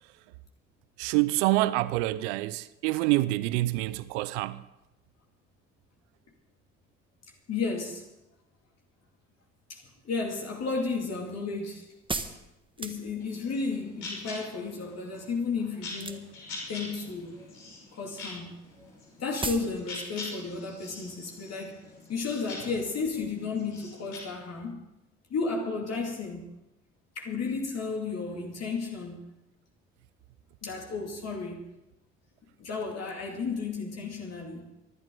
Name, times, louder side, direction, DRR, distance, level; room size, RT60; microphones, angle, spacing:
voice 1, 1.0-4.6, right 18 dB, 70° right, 0.7 m, -26 dB
voice 2, 7.5-8.1 9.7-11.9 12.8-16.3 16.7-17.4 17.9-18.7 19.2-21.8 22.1-24.9 25.3-26.5 27.2-29.3 30.6-31.7 32.6-34.7, left 4 dB, 45° left, 2.6 m, -33 dB
sound 1, 10.5-13.5 15.9-16.5 16.8-17.4 17.7-17.9 18.2-18.3 18.5-18.6 18.9-19.0 19.4-19.8 20.0-20.1, right 3 dB, 15° right, 1.4 m, -36 dB
sound 2, 13.2-24.2, left 3 dB, 75° left, 5.9 m, -44 dB
24.5 x 12.0 x 3.9 m
figure-of-eight pair, 50°, 36 cm